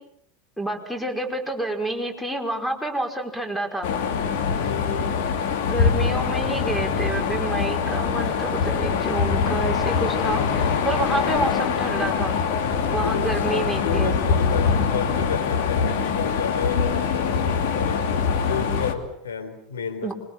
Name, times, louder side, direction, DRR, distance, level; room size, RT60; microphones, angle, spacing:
voice 1, 0.6-3.9 5.7-12.4 12.9-14.4 20.0-20.1, right 2 dB, 5° left, 5 dB, 5.4 m, -28 dB
sound 1, 3.8-18.9, left 6 dB, 60° left, 2.8 m, -23 dB
voice 2, 4.6-5.1 10.3-10.6 13.0-18.1 18.5-20.1, left 6 dB, 75° left, 7 dB, 3.8 m, -31 dB
26.0 x 24.0 x 7.2 m, 0.73 s
figure-of-eight pair, 80°, 0 cm